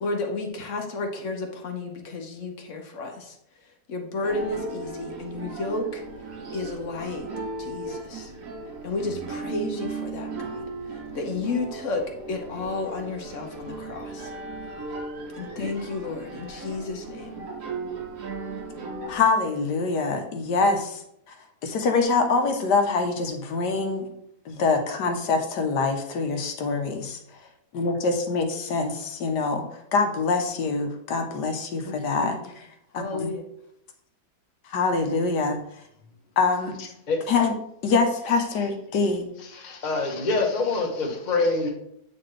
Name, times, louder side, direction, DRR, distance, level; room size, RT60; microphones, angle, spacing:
voice 1, 0.0-6.0 6.5-7.3 7.6-8.3 8.8-14.3 15.4-17.4 31.8-32.5 32.9-33.4, left 3 dB, 55° left, 3 dB, 1.1 m, -32 dB
sound 1, 4.2-19.2, right 3 dB, 60° right, 1.5 m, -36 dB
voice 2, 19.1-21.0 21.3-21.4 21.6-24.1 24.4-27.2 27.7-32.4 32.9-33.3 34.7-35.6 36.4-36.9 37.3-37.6 37.8-39.3, left 4 dB, 85° left, 6 dB, 1.5 m, -24 dB
voice 3, 39.4-41.7, left 3 dB, 30° left, 0 dB, 1.0 m, -25 dB
8.4 x 4.2 x 3.3 m, 0.74 s
omnidirectional pair, 1.8 m